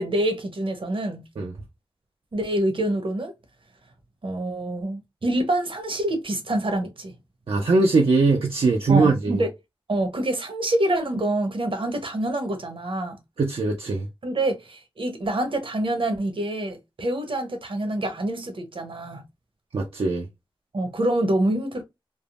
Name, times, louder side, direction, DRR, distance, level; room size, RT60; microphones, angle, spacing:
voice 1, 0.0-1.2 2.3-3.3 4.2-7.1 8.9-9.5 9.9-13.2 14.2-19.2 20.7-21.8, right 1 dB, 65° right, 0.8 m, -26 dB
voice 2, 7.5-9.4 13.4-14.1 19.7-20.3, right 3 dB, 80° right, 0.5 m, -21 dB
3.4 x 2.0 x 2.3 m
wide cardioid pair, 60°, 10 cm